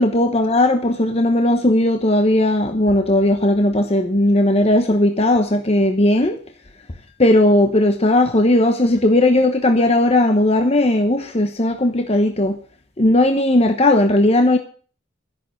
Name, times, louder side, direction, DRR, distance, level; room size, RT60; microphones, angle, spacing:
voice 1, 0.0-6.4 7.2-12.5 13.0-14.6, left 1 dB, 30° left, 6 dB, 1.0 m, -16 dB
13.0 x 11.0 x 7.2 m, 0.43 s
head